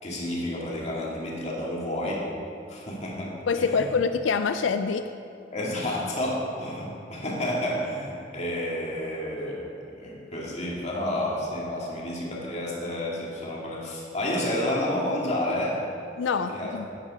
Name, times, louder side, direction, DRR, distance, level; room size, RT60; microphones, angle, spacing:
voice 1, 0.0-2.2 2.7-3.8 5.5-9.7 10.0-15.8 16.5-17.0, left 1 dB, 35° left, -4 dB, 2.1 m, -30 dB
voice 2, 3.5-5.0 16.2-16.9, left 5 dB, 80° left, 9 dB, 0.4 m, -25 dB
10.0 x 8.8 x 5.0 m, 2.6 s
head